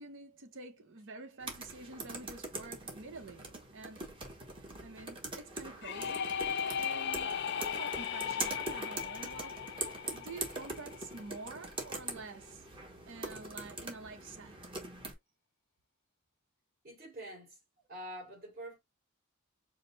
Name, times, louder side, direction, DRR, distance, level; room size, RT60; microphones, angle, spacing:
voice 1, 0.0-4.1 4.6-12.7 13.1-14.6, right 3 dB, 65° right, 0.9 m, -48 dB
sound 1, 1.4-15.1, right 2 dB, 25° right, 1.1 m, -43 dB
sound 2, 5.8-11.5, left 7 dB, 55° left, 0.5 m, -37 dB
voice 2, 16.8-17.6 17.9-18.8, right 1 dB, 45° right, 2.7 m, -46 dB
5.0 x 2.1 x 4.0 m
head